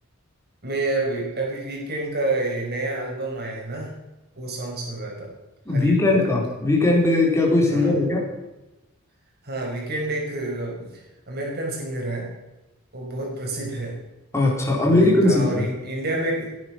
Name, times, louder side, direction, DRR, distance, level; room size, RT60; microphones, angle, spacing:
voice 1, 0.6-3.9 4.4-5.3 5.7-6.4 7.7-8.0 9.4-10.9 11.3-12.3 12.9-14.0 14.8-16.6, right 2 dB, 50° right, -1 dB, 5.5 m, -29 dB
voice 2, 5.7-8.3 14.3-15.7, left 2 dB, 15° left, -2 dB, 4.3 m, -19 dB
18.0 x 11.0 x 6.1 m, 1.0 s
head